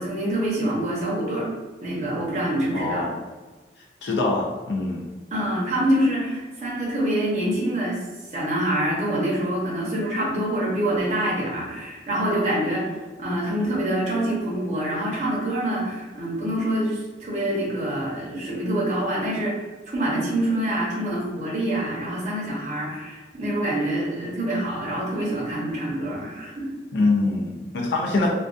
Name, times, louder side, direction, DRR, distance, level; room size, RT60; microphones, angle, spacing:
voice 1, 0.0-1.5 1.8-3.0 5.3-8.0 8.3-19.5 19.9-26.7, right 1 dB, 40° right, -5 dB, 0.7 m, -26 dB
voice 2, 2.7-3.1 4.0-5.0 26.9-28.3, left 2 dB, 80° left, -1 dB, 0.4 m, -24 dB
2.3 x 2.2 x 2.4 m, 1.3 s
head